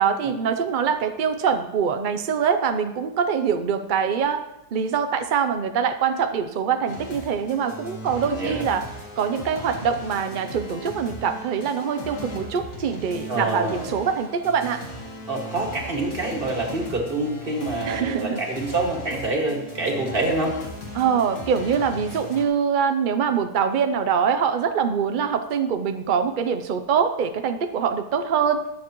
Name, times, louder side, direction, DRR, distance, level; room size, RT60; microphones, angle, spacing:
voice 1, 0.0-4.5 4.7-8.9 9.2-14.8 17.8-18.4 20.9-28.7, right 7 dB, 80° right, 8 dB, 0.4 m, -24 dB
sound 1, 6.9-22.5, equal, 60° left, 2.2 m, -38 dB
voice 2, 8.3-8.7 13.3-13.9 15.3-20.5, right 2 dB, 35° right, 0 dB, 2.1 m, -26 dB
21.5 x 7.4 x 3.0 m, 0.91 s
omnidirectional pair, 1.7 m